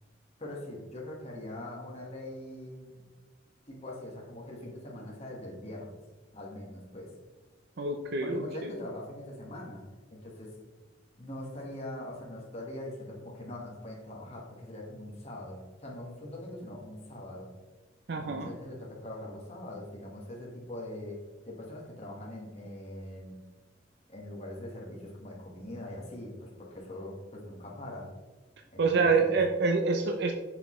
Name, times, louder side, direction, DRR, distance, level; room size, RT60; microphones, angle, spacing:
voice 1, 0.4-3.0 3.7-5.9 6.3-7.1 8.2-9.8 10.1-10.5 11.2-17.5 18.2-21.2 21.4-23.3 24.1-28.1 28.7-29.4, left 1 dB, 35° left, -3 dB, 1.5 m, -42 dB
voice 2, 7.8-8.4 18.1-18.5 28.8-30.3, right 4 dB, 60° right, 3 dB, 0.5 m, -26 dB
6.6 x 6.1 x 3.1 m, 1.2 s
head